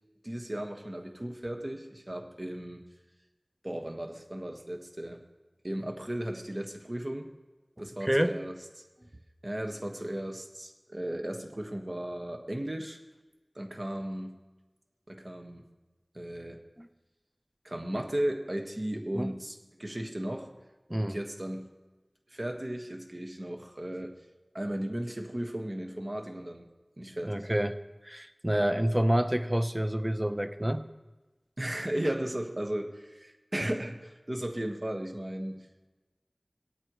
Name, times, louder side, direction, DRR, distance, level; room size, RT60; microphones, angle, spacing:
voice 1, 0.2-2.8 3.6-5.2 5.6-7.3 7.8-8.8 9.4-13.0 13.5-14.4 15.1-15.6 16.1-16.6 17.6-20.5 21.0-21.7 22.3-24.2 24.5-26.7 27.0-27.5 31.6-35.7, right 1 dB, 45° right, 3 dB, 1.5 m, -35 dB
voice 2, 8.0-8.3 16.8-16.9 19.2-19.3 20.9-21.2 27.2-27.7 28.0-30.8, right 1 dB, 20° right, 9 dB, 0.7 m, -28 dB
18.5 x 8.8 x 3.1 m, 1.2 s
wide cardioid pair, 40°, 0 cm